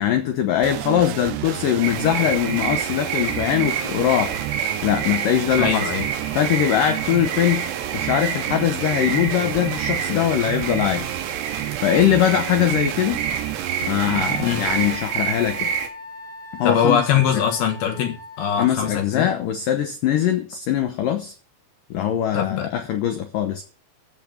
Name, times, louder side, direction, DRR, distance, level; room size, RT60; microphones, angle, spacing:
voice 1, 0.0-4.4 4.8-5.9 6.4-7.7 7.9-11.2 11.8-13.2 13.8-15.7 16.5-17.0 17.3-17.4 18.6-21.3 21.9-23.6, left 10 dB, 85° left, 1.9 m, -21 dB
sound 1, 0.6-15.0, right 16 dB, 80° right, 2.5 m, -31 dB
sound 2, 1.8-15.9, right 7 dB, 50° right, 2.9 m, -28 dB
voice 2, 5.6-6.1 14.4-14.7 16.6-19.3 22.3-22.7, left 8 dB, 70° left, 2.7 m, -22 dB
Wind instrument woodwind instrument, 14.2-19.1, left 3 dB, 35° left, 1.6 m, -39 dB
14.0 x 5.2 x 8.8 m
omnidirectional pair, 5.3 m